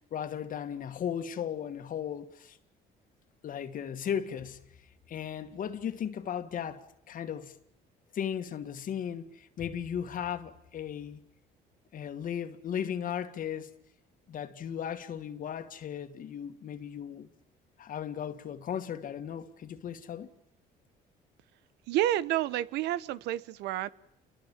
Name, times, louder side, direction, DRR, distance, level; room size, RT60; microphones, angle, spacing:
voice 1, 0.1-2.6 3.4-4.6 5.1-7.6 8.1-11.2 11.9-13.7 14.3-17.3 17.8-20.3, left 8 dB, 55° left, 2.1 m, -36 dB
voice 2, 21.9-23.9, right 13 dB, 85° right, 1.2 m, -29 dB
29.5 x 22.5 x 7.5 m
cardioid pair, 110°, 17 cm